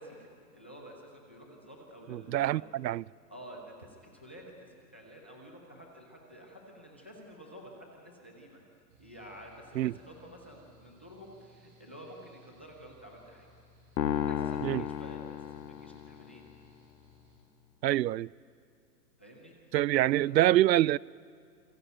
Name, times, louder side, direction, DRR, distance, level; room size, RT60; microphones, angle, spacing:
voice 1, 0.0-2.7 3.3-8.6 9.0-13.5 14.1-16.4 19.2-19.5 20.0-20.4, equal, 10° left, 0.6 m, -50 dB
voice 2, 2.1-3.0 9.8-9.9 14.6-14.9 17.8-18.3 19.7-21.0, right 14 dB, 90° right, 0.6 m, -25 dB
Mechanical fan, 8.9-17.4, left 1 dB, 35° right, 7.8 m, -61 dB
sound 1, 14.0-16.4, left 10 dB, 90° left, 1.5 m, -33 dB
27.5 x 22.0 x 8.9 m
hypercardioid pair, 180°, 50 cm